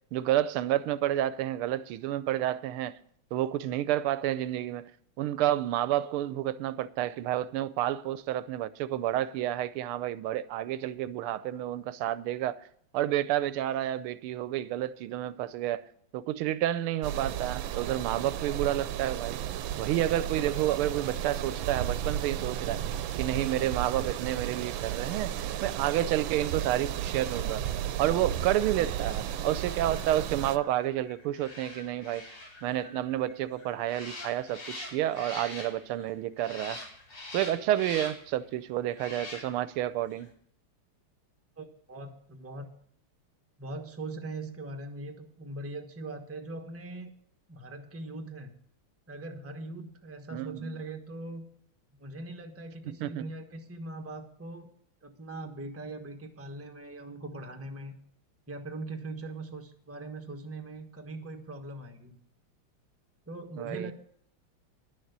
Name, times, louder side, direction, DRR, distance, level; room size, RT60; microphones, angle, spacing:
voice 1, 0.1-2.9 3.3-4.9 5.2-12.6 12.9-15.8 16.1-19.4 19.8-22.8 23.2-27.6 28.0-32.2 32.6-36.8 37.3-40.3 50.3-50.7 52.8-53.2 63.6-63.9, right 13 dB, 90° right, 1.5 m, -30 dB
sound 1, 17.0-30.6, right 11 dB, 75° right, 1.4 m, -34 dB
sound 2, 26.3-36.1 36.4-38.4 38.9-39.8 40.1-40.3, left 2 dB, 80° left, 3.8 m, -46 dB
voice 2, 41.6-42.7 43.6-47.1 47.5-48.5 49.1-51.4 52.0-54.7 55.0-57.9 58.5-62.2 63.3-63.9, right 2 dB, 10° right, 0.9 m, -41 dB
11.0 x 6.6 x 8.0 m
omnidirectional pair, 2.3 m